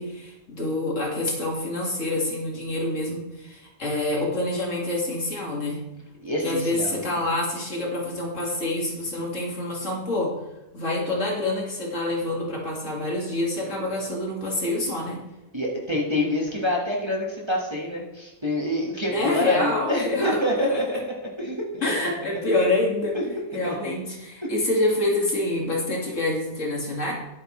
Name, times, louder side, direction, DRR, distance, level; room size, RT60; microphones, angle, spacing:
voice 1, 0.0-5.8 6.4-10.3 10.7-15.2 19.1-20.8 21.8-23.2 23.5-27.1, left 2 dB, 55° left, -2 dB, 2.5 m, -26 dB
voice 2, 6.2-7.2 15.5-21.9 22.2-22.3 23.1-23.9 24.4-24.6, left 1 dB, 20° right, -3 dB, 1.7 m, -27 dB
12.0 x 8.2 x 3.2 m, 0.97 s
omnidirectional pair, 1.5 m